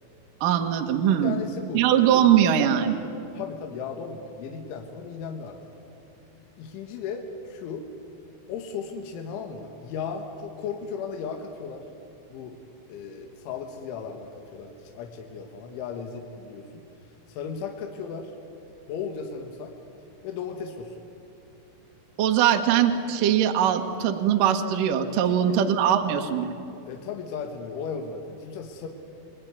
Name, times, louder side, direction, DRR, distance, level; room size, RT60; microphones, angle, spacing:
voice 1, 0.4-1.4 1.7-3.0 22.2-26.5, right 9 dB, 60° right, 4 dB, 2.4 m, -21 dB
voice 2, 1.1-1.9 3.3-6.0 6.6-7.9 8.5-11.9 12.3-12.6 12.9-16.9 17.3-18.4 18.9-19.7 20.2-21.0 25.3-25.6 26.9-28.9, left 6 dB, 75° left, 3 dB, 3.9 m, -36 dB
28.5 x 22.0 x 9.6 m, 2.7 s
omnidirectional pair, 5.7 m